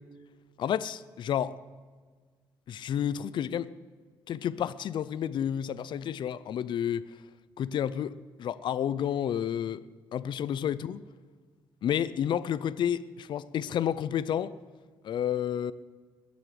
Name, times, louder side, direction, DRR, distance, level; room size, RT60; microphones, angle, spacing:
voice 1, 0.6-1.6 2.7-3.7 4.3-7.0 7.6-8.1 8.4-9.9 10.1-11.0 11.8-14.5 15.0-15.7, left 9 dB, 65° left, 0.6 m, -30 dB
21.0 x 7.2 x 7.6 m
cardioid pair, 95°, 9 cm